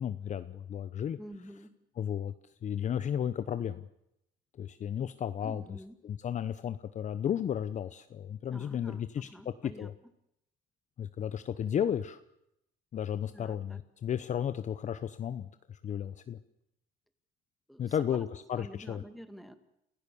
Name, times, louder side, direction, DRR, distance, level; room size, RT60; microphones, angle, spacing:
voice 1, 0.0-1.2 2.0-2.3 2.6-3.9 4.6-5.6 6.0-9.9 11.0-12.2 12.9-16.4 17.8-19.0, left 9 dB, 45° left, 11 dB, 0.9 m, -34 dB
voice 2, 1.2-1.7 5.4-6.0 8.5-9.9 13.3-13.8 17.7-18.3 18.6-19.6, equal, ahead, 8 dB, 2.1 m, -48 dB
29.0 x 15.5 x 7.0 m, 0.80 s
cardioid pair, 110°, 17 cm